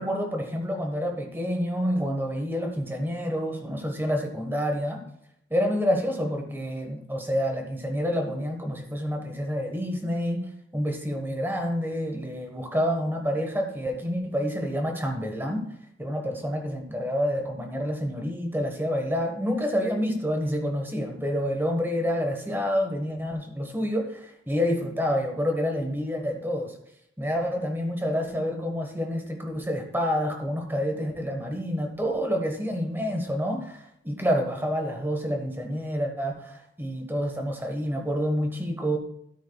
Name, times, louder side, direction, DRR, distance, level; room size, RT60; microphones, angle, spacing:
voice 1, 0.0-5.0 5.5-15.7 16.0-26.7 27.2-39.0, equal, 10° right, 4 dB, 1.3 m, -28 dB
13.0 x 8.6 x 2.4 m, 0.74 s
head